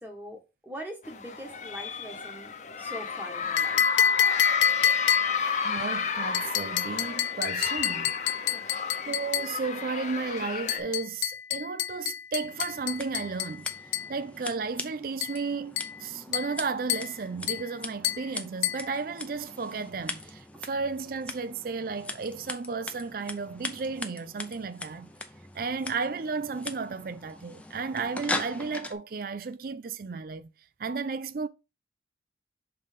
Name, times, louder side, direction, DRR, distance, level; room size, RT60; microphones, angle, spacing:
voice 1, 0.0-4.0 8.3-8.6 20.5-20.7, equal, 10° right, 1.4 m, -43 dB
sound 1, 1.0-10.8, left 5 dB, 40° left, 0.8 m, -32 dB
sound 2, 3.6-5.5 6.3-9.6 10.7-14.1 15.2-15.4 15.8-16.0 16.3-16.6 16.9-17.2 17.5-17.7 18.0-18.3 18.6-18.9, left 9 dB, 75° left, 0.4 m, -28 dB
voice 2, 5.4-8.1 9.1-25.1 25.5-30.5 30.8-31.5, right 4 dB, 50° right, 0.4 m, -34 dB
Scissors, 12.4-28.9, left 2 dB, 5° left, 0.6 m, -40 dB
5.5 x 4.0 x 5.1 m
head